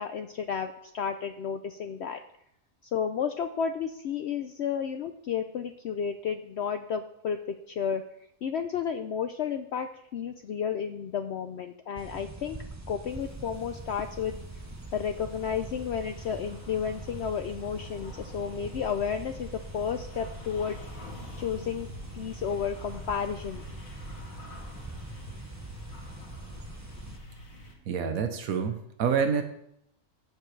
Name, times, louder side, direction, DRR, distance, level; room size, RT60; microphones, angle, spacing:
voice 1, 0.0-2.2 2.9-7.4 7.7-8.0 8.4-12.6 12.9-14.3 14.9-20.8 21.4-21.9 22.1-23.6, left 7 dB, 60° left, 7 dB, 0.8 m, -32 dB
sound 1, 12.0-27.2, right 2 dB, 15° right, 0.6 m, -43 dB
sound 2, 13.1-27.7, left 1 dB, 80° left, 2.2 m, -47 dB
voice 2, 27.9-29.4, right 6 dB, 90° right, 7 dB, 1.3 m, -27 dB
14.5 x 7.5 x 3.2 m, 0.75 s
omnidirectional pair, 1.4 m